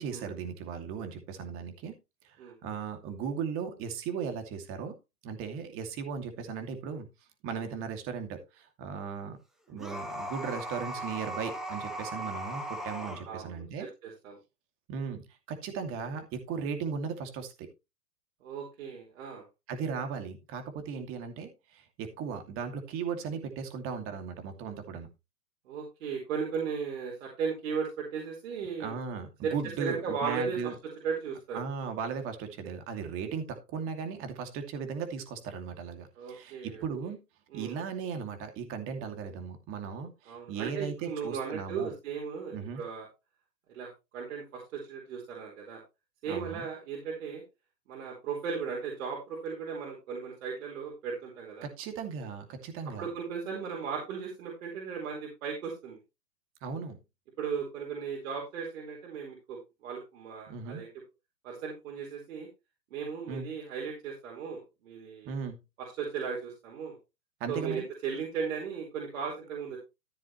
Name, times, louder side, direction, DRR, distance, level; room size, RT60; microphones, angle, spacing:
voice 1, 0.0-2.0 2.2-4.9 5.2-7.1 7.4-9.4 9.7-13.9 14.9-17.7 19.7-25.1 28.8-30.7 31.5-37.2 37.5-41.9 42.5-42.8 46.3-46.7 51.6-53.1 56.6-57.0 60.5-60.8 63.3-63.5 65.2-65.6 67.4-67.9, right 6 dB, 25° right, 6 dB, 2.5 m, -37 dB
sound 1, 9.8-13.2, equal, ahead, 0.5 m, -38 dB
voice 2, 13.2-14.4 18.4-19.4 25.7-28.9 29.4-29.5 29.8-30.6 31.0-31.6 36.2-36.8 37.5-37.8 40.3-43.1 43.7-45.8 46.2-47.4 47.9-51.7 52.8-56.0 57.4-59.6 59.8-60.9 61.4-62.5 62.9-65.3 65.8-67.0 67.5-69.8, right 6 dB, 55° right, -1 dB, 4.6 m, -36 dB
14.5 x 7.5 x 3.2 m, 0.26 s
hypercardioid pair, 145°, 49 cm